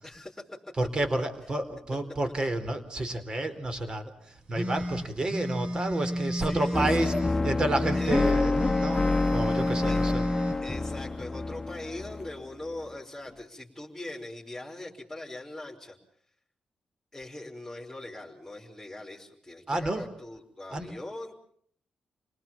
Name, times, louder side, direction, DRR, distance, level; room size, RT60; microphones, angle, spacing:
voice 1, 0.0-0.4 6.4-7.1 7.9-8.3 9.8-10.0 10.6-16.0 17.1-21.4, left 1 dB, 5° left, -2 dB, 4.5 m, -41 dB
voice 2, 0.8-7.1 7.4-10.3 19.7-20.0 20.7-20.9, right 2 dB, 40° right, 9 dB, 4.1 m, -30 dB
sound 1, 4.5-7.3 7.8-10.6, equal, 55° right, 6.0 m, -32 dB
sound 2, 6.7-12.8, left 3 dB, 20° left, 1.2 m, -28 dB
28.5 x 19.5 x 7.5 m, 0.62 s
cardioid pair, 70°, 2 cm